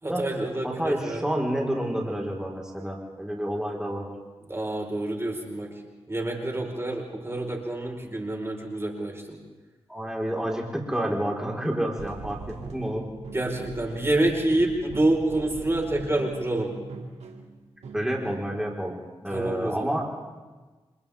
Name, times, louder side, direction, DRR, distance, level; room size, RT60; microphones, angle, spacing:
voice 1, 0.0-1.3 4.5-5.7 6.1-9.4 13.3-16.7 19.3-20.0, right 1 dB, 25° right, 1 dB, 4.7 m, -27 dB
voice 2, 0.6-4.1 9.9-13.0 17.9-20.0, right 1 dB, 5° right, -2 dB, 4.5 m, -29 dB
sound 1, 12.0-18.6, right 4 dB, 85° right, 2.3 m, -41 dB
29.0 x 26.5 x 3.6 m, 1.3 s
cardioid pair, 50°, 11 cm